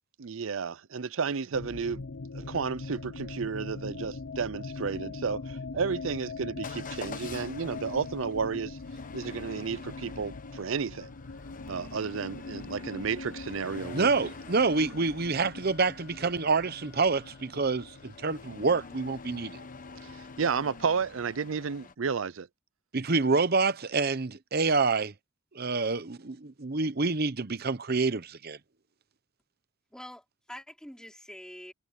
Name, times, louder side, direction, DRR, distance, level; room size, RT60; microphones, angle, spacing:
voice 1, 0.2-2.0 2.3-8.8 9.1-11.1 11.7-14.3 20.0-22.5, right 5 dB, 75° right, 0.6 m, -32 dB
sound 1, 1.5-21.4, left 3 dB, 70° left, 0.7 m, -42 dB
Motor vehicle (road) / Engine starting / Accelerating revving vroom, 6.6-21.9, left 4 dB, 40° left, 1.1 m, -47 dB
voice 2, 13.9-19.6 22.9-25.1 25.5-28.6, right 4 dB, 50° right, 0.9 m, -27 dB
voice 3, 29.9-31.7, equal, 5° left, 3.6 m, -45 dB
head